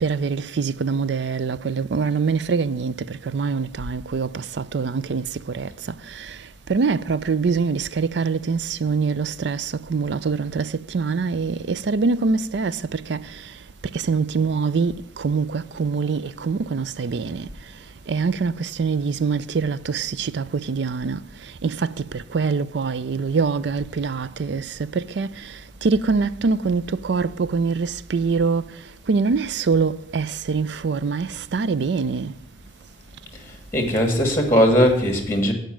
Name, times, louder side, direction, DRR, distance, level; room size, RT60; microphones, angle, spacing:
voice 1, 0.0-5.3 5.5-5.7 6.2-6.3 6.7-13.2 13.9-17.5 18.1-21.2 21.6-25.3 25.8-28.7 29.1-32.3, right 5 dB, 65° right, 0.4 m, -24 dB
voice 2, 33.7-35.5, equal, 15° left, 1.5 m, -18 dB
9.1 x 5.2 x 7.3 m
head